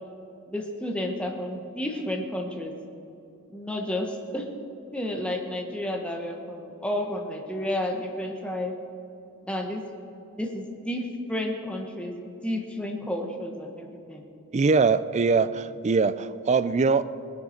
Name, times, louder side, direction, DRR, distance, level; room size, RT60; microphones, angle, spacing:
voice 1, 0.5-2.7 3.5-4.5 4.9-8.7 9.4-9.9 10.4-14.2, left 1 dB, 5° left, 1 dB, 1.1 m, -31 dB
voice 2, 14.5-17.0, right 4 dB, 30° right, 14 dB, 0.4 m, -22 dB
19.0 x 10.5 x 4.4 m, 2.8 s
head